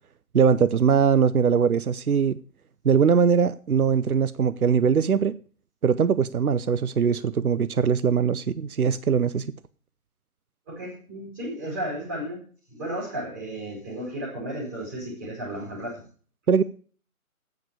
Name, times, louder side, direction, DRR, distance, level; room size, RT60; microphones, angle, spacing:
voice 1, 0.3-2.4 2.8-5.3 5.8-9.5 16.5-16.6, right 6 dB, 75° right, 0.8 m, -21 dB
voice 2, 10.7-12.4 12.7-16.0, right 1 dB, 15° right, 4.7 m, -34 dB
9.5 x 7.5 x 8.6 m
figure-of-eight pair, 175°, 44 cm